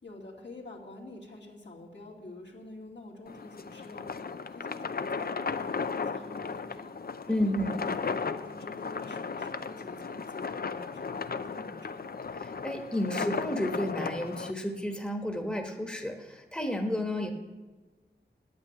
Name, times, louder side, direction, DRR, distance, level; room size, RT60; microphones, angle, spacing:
voice 1, 0.0-6.9 7.2-7.9 8.3-12.0, left 2 dB, 70° left, -2 dB, 2.4 m, -47 dB
sound 1, 3.3-14.5, left 5 dB, 55° left, 0.6 m, -35 dB
voice 2, 7.3-7.7 12.6-17.3, left 1 dB, 5° left, 2 dB, 1.3 m, -31 dB
9.5 x 8.6 x 8.3 m, 1.3 s
wide cardioid pair, 70°, 19 cm